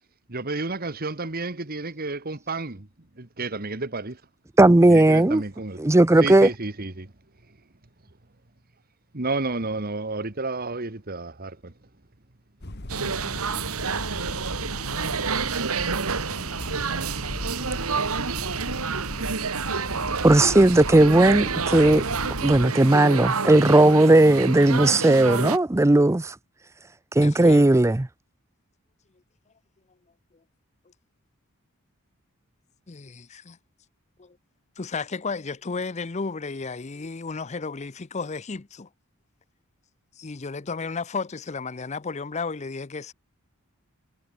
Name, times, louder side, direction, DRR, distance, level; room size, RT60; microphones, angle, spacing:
voice 1, 0.3-2.9 3.2-4.2 4.9-5.8 6.2-7.1 9.1-11.7, right 3 dB, 45° right, 1.7 m, -31 dB
voice 2, 4.6-5.4 5.8-6.5 20.2-22.0 22.4-26.4 27.1-28.1, right 2 dB, 15° right, 0.5 m, -16 dB
sound 1, 12.6-22.7, left 1 dB, 50° left, 2.3 m, -37 dB
sound 2, 12.9-25.6, right 5 dB, 75° right, 1.7 m, -28 dB
voice 3, 27.2-27.7 32.9-33.6 34.2-34.4 34.8-38.9 40.2-43.1, left 4 dB, 30° left, 0.6 m, -33 dB
head